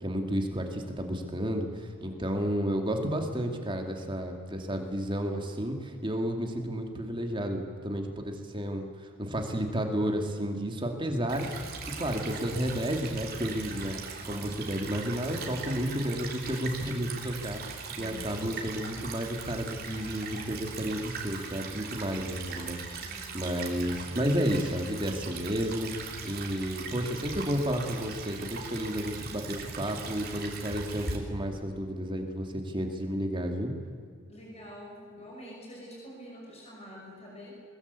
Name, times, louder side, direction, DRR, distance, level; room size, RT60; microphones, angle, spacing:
voice 1, 0.0-14.0 14.2-25.9 26.2-33.7, equal, 25° right, 3 dB, 2.5 m, -32 dB
voice 2, 0.9-1.3 18.0-18.4 22.9-23.4 34.3-37.5, equal, 30° left, -2 dB, 6.2 m, -47 dB
Stream / Trickle dribble, 11.3-31.2, right 4 dB, 45° right, 3.2 m, -40 dB
21.5 x 21.0 x 8.3 m, 2.2 s
head